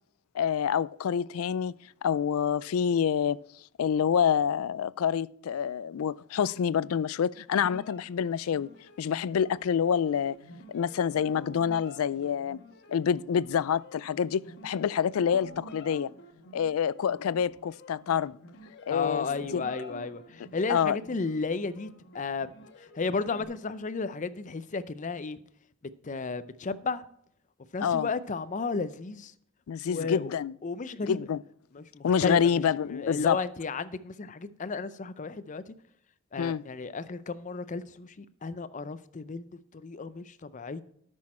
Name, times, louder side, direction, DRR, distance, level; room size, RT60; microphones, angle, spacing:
voice 1, 0.3-1.7 2.0-3.4 3.8-8.7 9.0-10.4 10.7-12.6 12.9-16.1 16.5-18.4 18.9-19.2 19.5-19.6 20.7-21.0 27.8-28.1 29.7-30.5 31.1-31.4 32.0-33.4 36.4-36.6, left 7 dB, 85° left, 0.4 m, -27 dB
sound 1, 7.6-23.4, left 1 dB, 55° left, 1.3 m, -49 dB
voice 2, 18.9-21.9 22.1-25.4 26.0-27.0 27.7-29.3 29.8-30.3 30.6-31.2 31.7-35.7 36.3-40.8, left 4 dB, 35° left, 0.5 m, -34 dB
13.0 x 6.3 x 4.3 m
head